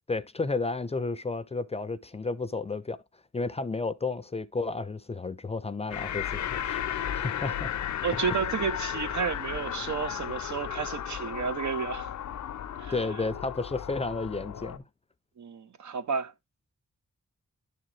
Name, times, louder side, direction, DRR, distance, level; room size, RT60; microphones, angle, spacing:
voice 1, 0.1-3.0 3.3-7.7 8.1-8.2 12.9-14.8, left 3 dB, 20° left, 0.4 m, -32 dB
sound 1, 5.9-14.8, left 10 dB, 80° left, 0.6 m, -34 dB
voice 2, 8.0-12.1 12.8-13.0 15.4-16.3, right 6 dB, 75° right, 0.8 m, -31 dB
11.0 x 3.7 x 3.1 m
wide cardioid pair, 100°, 29 cm